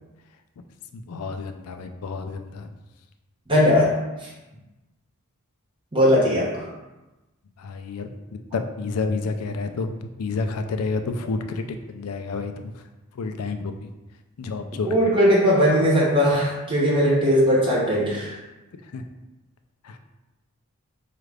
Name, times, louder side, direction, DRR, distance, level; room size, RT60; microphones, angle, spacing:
voice 1, 0.9-2.7 7.6-8.2 8.5-9.9 10.2-12.8 13.1-13.9 14.4-15.1 18.7-19.1 19.8-20.0, left 4 dB, 80° left, 7 dB, 0.4 m, -30 dB
voice 2, 3.5-4.3 5.9-6.7 14.9-18.3, equal, 25° right, -5 dB, 0.9 m, -19 dB
4.7 x 2.4 x 3.2 m, 1.1 s
head